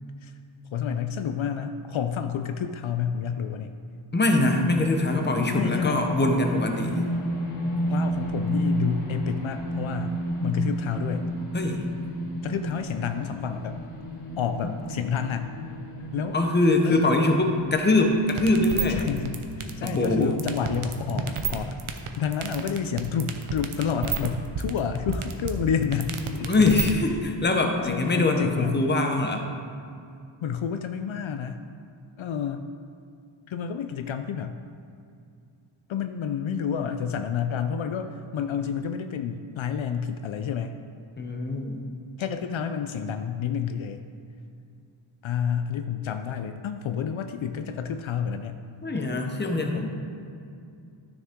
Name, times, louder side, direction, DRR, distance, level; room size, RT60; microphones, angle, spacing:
voice 1, 0.7-3.7 5.5-6.0 7.9-11.3 12.4-13.8 14.4-15.5 16.1-16.4 16.8-17.1 18.9-21.8 22.2-26.7 27.8-28.9 30.4-31.6 32.2-32.6 33.5-34.6 35.9-40.8 42.2-44.0 45.2-48.6, left 7 dB, 70° left, 8 dB, 0.5 m, -29 dB
voice 2, 4.1-7.0 11.5-11.9 14.6-14.7 16.3-19.0 19.8-20.3 26.4-29.4 41.2-41.8 48.8-49.9, left 2 dB, 20° left, 3 dB, 0.8 m, -23 dB
sound 1, 4.5-21.2, right 1 dB, 85° left, 1.5 m, -32 dB
sound 2, 18.3-26.9, right 7 dB, 80° right, 0.8 m, -30 dB
12.5 x 6.4 x 3.6 m, 2.5 s
wide cardioid pair, 165°, 49 cm